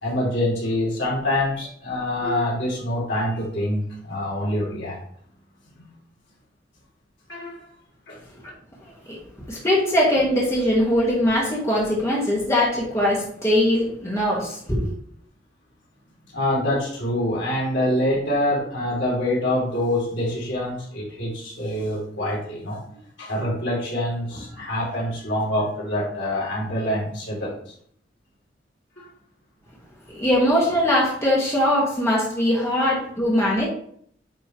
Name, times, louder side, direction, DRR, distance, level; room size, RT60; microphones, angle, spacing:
voice 1, 0.0-5.0 7.3-7.7 8.1-8.2 16.3-22.8 23.2-27.7 29.0-29.1 32.8-32.9, left 1 dB, 75° left, -4 dB, 3.0 m, -25 dB
voice 2, 8.8-9.2 9.5-14.9 30.1-33.7, left 1 dB, 15° left, -5 dB, 1.8 m, -21 dB
9.1 x 4.4 x 3.1 m, 0.63 s
head